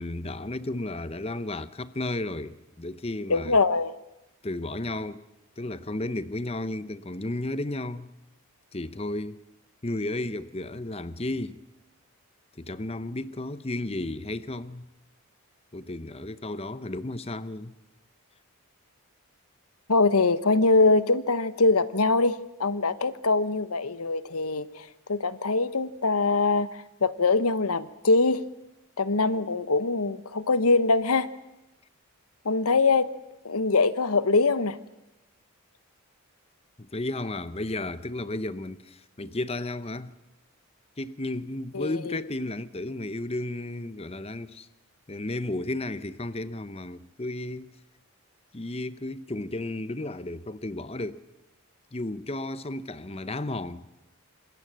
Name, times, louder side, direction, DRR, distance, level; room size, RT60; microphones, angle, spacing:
voice 1, 0.0-3.6 4.4-5.2 5.6-8.1 8.7-9.4 9.8-11.6 12.6-14.9 15.7-17.8 36.8-40.1 41.0-44.7 45.1-47.8 48.5-51.2 51.9-53.9, left 2 dB, 25° left, 0.8 m, -33 dB
voice 2, 3.3-3.9 19.9-26.7 27.0-28.4 29.0-31.3 32.4-33.1 33.4-34.8 41.7-42.2, left 3 dB, 80° left, 1.1 m, -23 dB
26.0 x 21.0 x 7.6 m
head